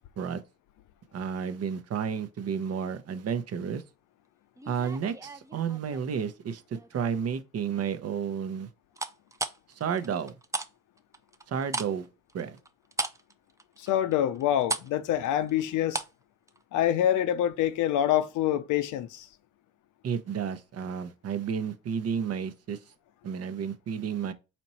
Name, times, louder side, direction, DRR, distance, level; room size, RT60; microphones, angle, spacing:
voice 1, 1.1-3.8 4.7-8.7 9.8-10.3 11.5-12.1 12.3-12.6 20.0-22.8 23.2-24.3, right 7 dB, 55° right, 0.7 m, -31 dB
sound 1, 4.6-6.3 6.7-7.2 9.0-10.7 11.0-16.2 16.5-16.6, right 2 dB, 10° right, 0.5 m, -36 dB
voice 2, 13.8-16.0 16.7-19.3, left 11 dB, 85° left, 0.6 m, -26 dB
4.3 x 2.9 x 4.2 m
cardioid pair, 90°, 30 cm